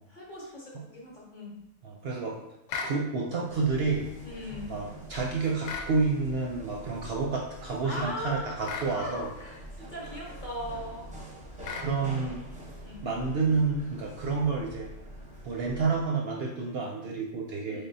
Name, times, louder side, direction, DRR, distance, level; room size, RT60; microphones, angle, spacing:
voice 1, 0.1-1.5 4.2-4.8 7.8-11.1 12.8-13.0 17.7-17.9, left 1 dB, 45° left, -4 dB, 0.8 m, -39 dB
voice 2, 1.8-2.4 2.8-4.1 4.7-9.3 11.8-12.4 13.0-14.9 15.4-17.9, right 4 dB, 65° right, -1 dB, 0.6 m, -29 dB
sound 1, 2.7-3.0 5.6-5.9 8.6-8.9 11.6-11.9, left 5 dB, 75° left, 0.9 m, -35 dB
sound 2, 3.5-16.1, right 1 dB, 10° right, 0.4 m, -45 dB
3.7 x 3.6 x 2.6 m, 0.84 s
omnidirectional pair, 1.4 m